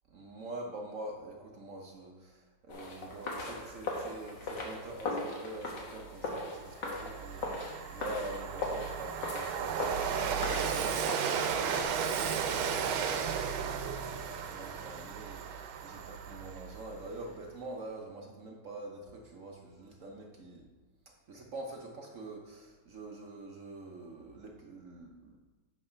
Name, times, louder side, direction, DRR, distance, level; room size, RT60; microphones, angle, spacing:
voice 1, 0.1-10.0 10.5-20.7 21.3-25.4, right 2 dB, 55° right, 0 dB, 0.9 m, -45 dB
sound 1, 2.7-11.8, left 2 dB, 60° left, 1.7 m, -39 dB
Train, 6.1-6.2 6.6-17.0, right 7 dB, 85° right, 1.5 m, -34 dB
8.8 x 4.2 x 5.6 m, 1.2 s
omnidirectional pair, 2.2 m